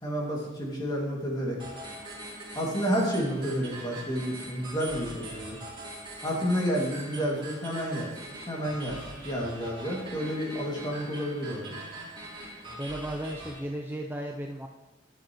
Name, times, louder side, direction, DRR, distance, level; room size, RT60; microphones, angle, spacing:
voice 1, 0.0-1.6 2.6-5.6 6.2-8.1 8.5-9.0 9.2-11.8, equal, 25° left, -2 dB, 2.2 m, -30 dB
sound 1, 1.6-13.6, right 1 dB, 30° right, 3.4 m, -42 dB
voice 2, 12.8-14.7, right 1 dB, 10° right, 1 dB, 0.5 m, -35 dB
11.5 x 9.3 x 3.0 m, 1.1 s
head